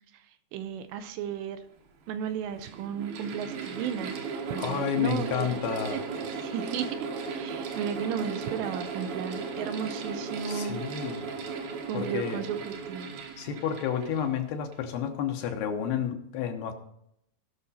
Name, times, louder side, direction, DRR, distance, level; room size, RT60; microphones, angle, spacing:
voice 1, 0.5-1.6 2.1-4.1 4.5-5.6 5.9-6.0 6.4-7.0 7.3-10.8 11.9-13.1, right 7 dB, 80° right, 9 dB, 2.8 m, -34 dB
Mechanical fan, 1.3-1.4 2.2-14.9, right 5 dB, 65° right, 2.7 m, -36 dB
voice 2, 4.6-6.0 10.5-11.3 11.9-12.4 13.4-16.7, left 8 dB, 75° left, 4 dB, 2.8 m, -30 dB
17.5 x 6.2 x 4.2 m, 0.76 s
omnidirectional pair, 5.1 m